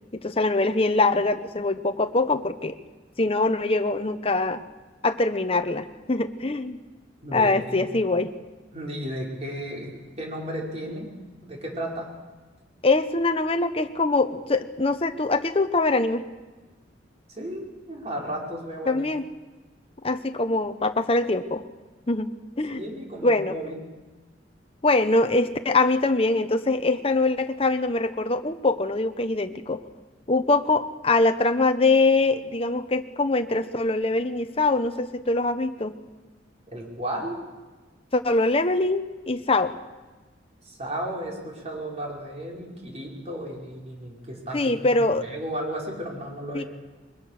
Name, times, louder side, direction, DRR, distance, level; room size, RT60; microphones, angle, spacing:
voice 1, 0.1-2.8 3.2-4.6 5.0-6.8 7.3-8.3 12.8-16.3 18.9-19.2 20.0-21.6 22.1-22.8 23.2-23.6 24.8-29.8 30.3-35.9 38.1-39.7 44.5-45.3 46.5-46.6, left 2 dB, 30° left, 8 dB, 0.9 m, -23 dB
voice 2, 7.2-7.8 8.7-11.1 11.4-12.1 17.3-19.0 22.7-23.8 36.7-37.4 40.6-46.7, right 1 dB, 35° right, -1 dB, 5.0 m, -34 dB
22.5 x 21.0 x 6.6 m, 1.2 s
head